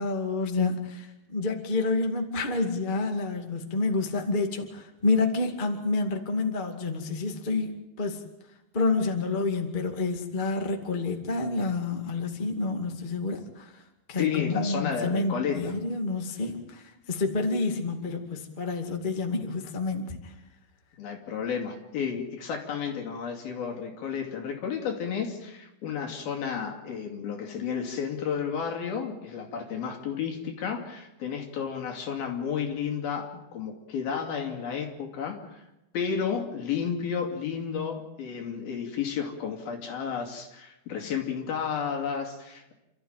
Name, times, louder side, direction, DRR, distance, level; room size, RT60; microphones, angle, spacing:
voice 1, 0.0-8.2 8.7-13.8 14.1-20.3, left 3 dB, 20° left, 4 dB, 1.5 m, -29 dB
voice 2, 14.2-15.8 21.0-35.6 35.9-42.7, left 7 dB, 70° left, 3 dB, 4.5 m, -32 dB
29.0 x 14.0 x 9.1 m, 0.94 s
omnidirectional pair, 4.5 m